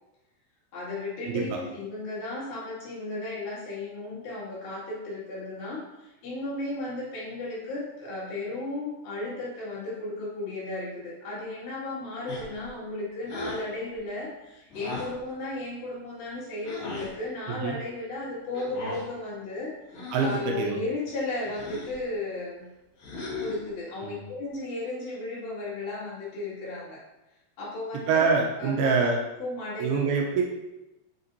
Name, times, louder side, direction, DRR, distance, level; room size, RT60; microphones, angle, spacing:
voice 1, 0.7-22.7 23.4-27.0 27.6-28.3 28.6-29.0 29.4-30.0, left 2 dB, 70° left, -8 dB, 4.0 m, -35 dB
voice 2, 1.2-1.6 17.5-17.8 20.1-20.8 24.0-24.2 28.1-29.2 29.8-30.4, right 5 dB, 85° right, 0 dB, 2.6 m, -25 dB
sound 1, 12.3-12.7 13.3-13.6 14.7-15.2 16.6-17.1 18.5-19.1 19.9-20.4 21.4-22.0 23.0-23.7, left 2 dB, 55° left, 3.6 m, -37 dB
8.1 x 5.9 x 2.8 m, 0.96 s
omnidirectional pair, 4.5 m